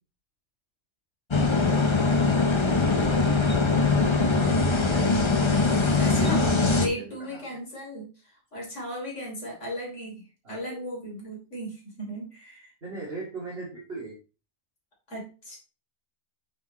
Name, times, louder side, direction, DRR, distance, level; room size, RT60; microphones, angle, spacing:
sound 1, 1.3-6.9, left 3 dB, 25° left, 0.9 m, -22 dB
voice 1, 2.6-6.4 7.0-7.5 10.4-10.8 12.8-14.1, right 3 dB, 55° right, -5 dB, 2.4 m, -40 dB
voice 2, 6.0-12.7 15.1-15.6, equal, 85° left, -3 dB, 3.6 m, -36 dB
8.8 x 4.5 x 4.1 m, 0.33 s
omnidirectional pair, 1.2 m